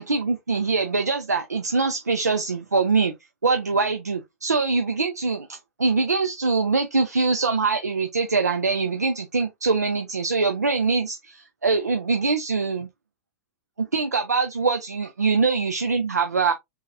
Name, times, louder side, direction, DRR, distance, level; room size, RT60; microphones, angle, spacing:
voice 1, 0.0-3.1 3.4-12.9 13.8-16.5, right 4 dB, 80° right, 0.6 m, -23 dB
4.1 x 3.8 x 2.6 m
figure-of-eight pair, 105°, 9 cm